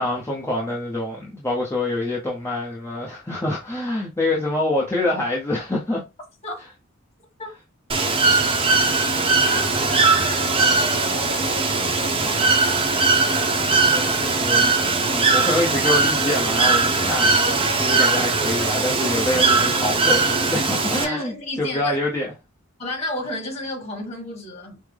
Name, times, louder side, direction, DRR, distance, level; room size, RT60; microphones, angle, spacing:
voice 1, 0.0-6.0 13.9-14.7 15.0-22.3, left 1 dB, 10° left, 0.6 m, -26 dB
Bird / Water, 7.9-21.0, right 3 dB, 25° right, 0.7 m, -20 dB
voice 2, 8.6-9.0 9.3-12.6 21.0-22.0 22.8-24.8, left 1 dB, 30° left, 1.6 m, -33 dB
5.2 x 2.0 x 3.3 m
head